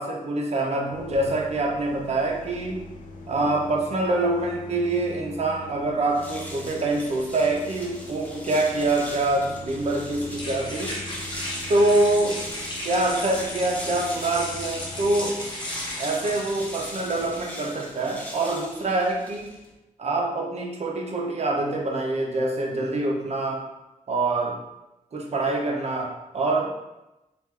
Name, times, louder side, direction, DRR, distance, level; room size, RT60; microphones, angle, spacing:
voice 1, 0.0-2.8 3.3-11.0 11.7-12.4 12.8-15.4 16.0-19.5 20.0-23.6 24.1-24.6 25.1-26.7, right 2 dB, 55° right, 0 dB, 0.6 m, -25 dB
sound 1, 0.9-15.3, left 2 dB, 80° left, 0.5 m, -42 dB
sound 2, 6.1-19.7, equal, 10° left, 0.6 m, -40 dB
sound 3, 8.8-17.3, left 1 dB, 35° left, 0.8 m, -36 dB
3.1 x 2.4 x 3.6 m, 0.97 s
wide cardioid pair, 125°, 13 cm